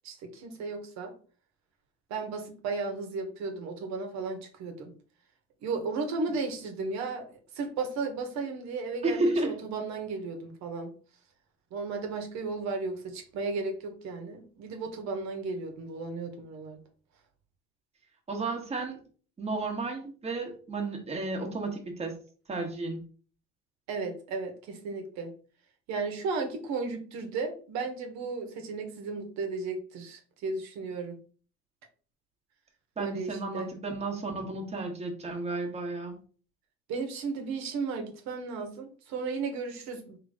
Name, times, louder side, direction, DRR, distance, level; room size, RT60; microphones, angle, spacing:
voice 1, 0.0-1.1 2.1-4.9 5.6-10.9 11.7-16.8 23.9-25.3 25.9-31.2 33.0-33.7 36.9-40.2, right 4 dB, 70° right, 5 dB, 1.2 m, -34 dB
voice 2, 9.0-9.6 18.3-19.0 19.4-22.2 22.5-23.0 33.0-36.2, right 2 dB, 20° right, 1 dB, 1.2 m, -32 dB
4.0 x 3.0 x 3.6 m, 0.41 s
cardioid pair, 115°, 29 cm